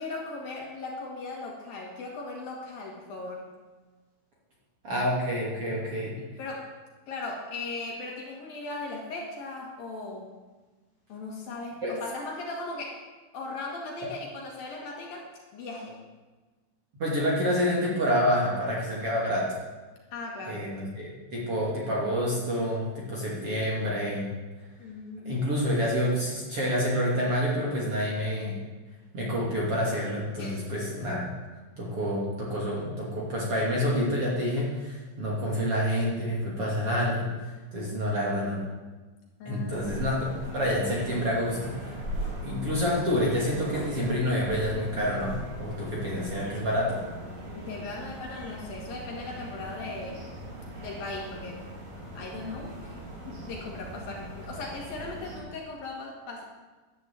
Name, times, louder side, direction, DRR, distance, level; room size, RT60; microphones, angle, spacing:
voice 1, 0.0-3.4 6.2-6.7 7.1-10.3 11.1-13.0 13.3-15.3 15.5-16.0 20.1-20.6 24.8-25.5 30.4-30.6 39.4-39.9 47.5-50.3 50.8-51.7 52.1-56.4, left 3 dB, 55° left, -1 dB, 3.4 m, -38 dB
voice 2, 4.8-6.1 11.8-11.9 17.0-19.5 20.5-24.3 25.2-28.6 29.1-31.3 31.8-37.4 37.7-38.6 39.4-40.2 40.5-42.0 42.4-47.0, equal, 35° right, -4 dB, 3.1 m, -28 dB
sound 1, 39.7-55.4, right 1 dB, 75° right, 6.6 m, -40 dB
12.0 x 10.0 x 8.4 m, 1.3 s
omnidirectional pair, 5.3 m